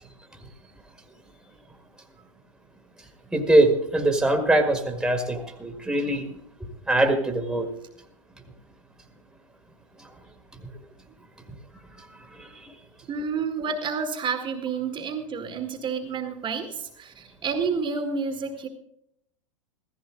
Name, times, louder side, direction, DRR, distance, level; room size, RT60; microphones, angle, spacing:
voice 1, 3.3-6.3 6.9-7.7 12.4-12.7, right 1 dB, 5° right, 4 dB, 1.9 m, -22 dB
voice 2, 13.1-18.7, right 5 dB, 30° right, 6 dB, 1.7 m, -29 dB
15.0 x 15.0 x 3.8 m, 0.74 s
hypercardioid pair, 115°, 17 cm